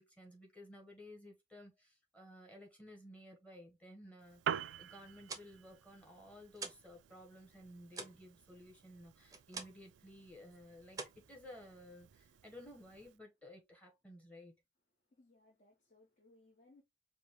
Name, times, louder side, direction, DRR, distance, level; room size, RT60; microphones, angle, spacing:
voice 1, 0.0-11.0 11.3-14.6, left 1 dB, 10° left, 1.3 m, -55 dB
Piano, 4.2-13.2, right 8 dB, 85° right, 0.3 m, -48 dB
sound 1, 5.2-7.0 7.2-10.0 10.3-10.6 10.9-12.0, right 4 dB, 20° right, 0.7 m, -48 dB
voice 2, 15.0-16.8, left 2 dB, 40° left, 1.3 m, -66 dB
5.2 x 2.4 x 3.1 m
head